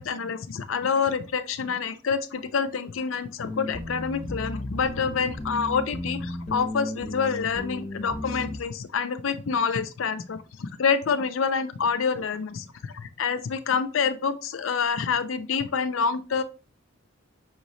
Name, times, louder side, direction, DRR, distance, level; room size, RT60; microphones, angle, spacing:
voice 1, 0.0-16.4, left 6 dB, 75° left, 11 dB, 0.5 m, -27 dB
sound 1, 3.4-8.6, left 1 dB, 35° left, 0.7 m, -35 dB
5.6 x 3.1 x 2.7 m, 0.32 s
head